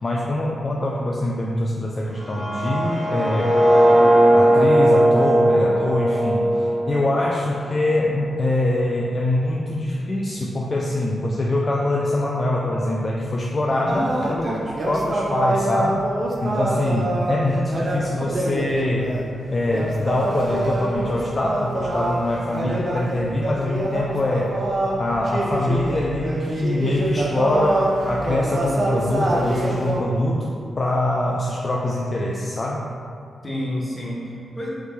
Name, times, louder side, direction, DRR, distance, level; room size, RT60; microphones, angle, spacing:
voice 1, 0.0-3.6 4.3-14.5 14.9-16.0 16.4-19.1 19.5-24.5 25.0-32.9, left 1 dB, 45° left, -3 dB, 0.3 m, -24 dB
sound 1, 2.1-8.1, right 1 dB, 15° right, 1.3 m, -18 dB
voice 2, 13.7-14.1 14.4-14.7 33.4-34.7, left 1 dB, 25° left, -5 dB, 1.0 m, -30 dB
sound 2, 13.9-30.0, right 1 dB, 55° right, 0.5 m, -25 dB
3.1 x 2.8 x 3.3 m, 2.4 s
supercardioid pair, 45°, 0 cm